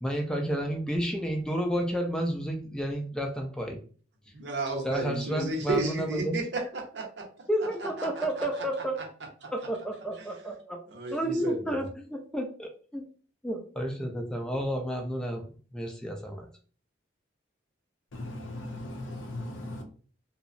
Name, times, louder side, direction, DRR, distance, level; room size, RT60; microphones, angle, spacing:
voice 1, 0.0-3.8 4.8-6.4 7.5-9.0 9.5-10.8 11.1-13.1 13.4-16.5, equal, 5° left, 0.4 m, -31 dB
voice 2, 4.3-7.4 7.8-8.7 9.4-9.5 10.2-10.3 10.9-11.8, right 2 dB, 65° right, 0.7 m, -33 dB
voice 3, 18.1-19.8, left 1 dB, 85° left, 0.6 m, -38 dB
2.8 x 2.0 x 2.5 m
head